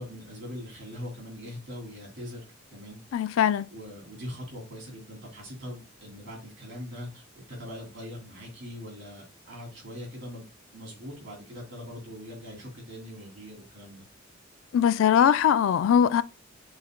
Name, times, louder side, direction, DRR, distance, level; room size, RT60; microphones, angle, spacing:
voice 1, 0.0-2.4 2.7-10.5 10.7-14.1, left 1 dB, 65° right, 2.8 m, -42 dB
voice 2, 3.1-3.7 14.7-16.2, left 8 dB, 90° left, 0.3 m, -21 dB
6.4 x 2.2 x 3.6 m
head